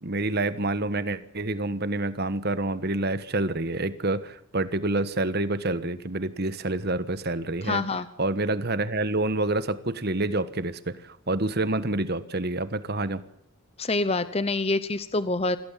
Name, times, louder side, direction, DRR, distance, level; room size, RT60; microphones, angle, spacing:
voice 1, 0.0-7.8 8.2-13.2, right 2 dB, 50° right, 13 dB, 1.3 m, -28 dB
voice 2, 7.6-8.1 13.8-15.6, left 2 dB, 30° left, 13 dB, 0.8 m, -26 dB
26.0 x 16.5 x 7.5 m, 0.71 s
head